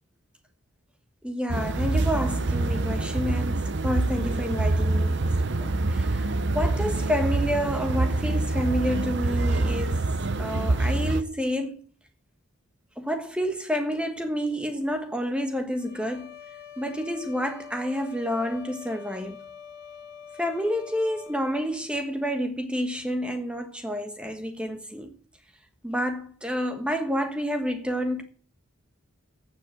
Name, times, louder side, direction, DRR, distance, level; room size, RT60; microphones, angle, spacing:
voice 1, 1.2-10.1 10.4-11.7 13.0-16.3 16.8-19.4 20.4-25.1 25.8-28.2, equal, 5° right, 1.3 m, -29 dB
sound 1, 1.5-11.2, right 2 dB, 55° right, 0.7 m, -25 dB
sound 2, 15.8-21.8, left 8 dB, 45° left, 2.6 m, -45 dB
8.5 x 7.6 x 8.9 m
head